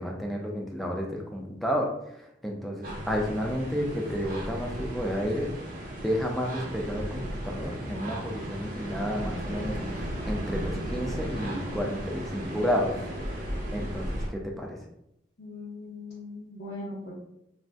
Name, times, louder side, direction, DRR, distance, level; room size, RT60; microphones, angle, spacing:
voice 1, 0.0-5.5 6.0-13.0 13.7-14.8, equal, ahead, 0 dB, 0.4 m, -31 dB
sound 1, 2.8-14.3, equal, 50° right, 0.6 m, -35 dB
voice 2, 15.4-17.1, left 2 dB, 75° left, -8 dB, 0.8 m, -40 dB
2.5 x 2.0 x 3.4 m, 0.79 s
head